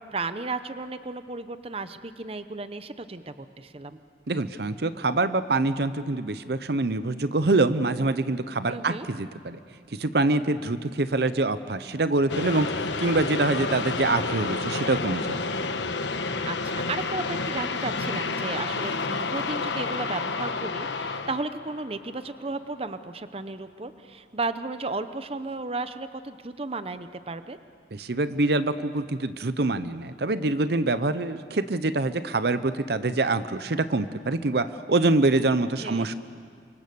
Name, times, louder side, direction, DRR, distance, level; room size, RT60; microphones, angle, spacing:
voice 1, 0.0-4.0 8.7-9.1 16.4-27.6 35.8-36.1, right 3 dB, 35° right, 11 dB, 0.8 m, -34 dB
voice 2, 4.3-9.6 9.9-15.4 27.9-36.1, right 2 dB, 60° right, 12 dB, 0.8 m, -25 dB
sound 1, 12.3-22.5, left 3 dB, 85° left, 1.2 m, -30 dB
29.5 x 24.5 x 6.9 m, 2.1 s
head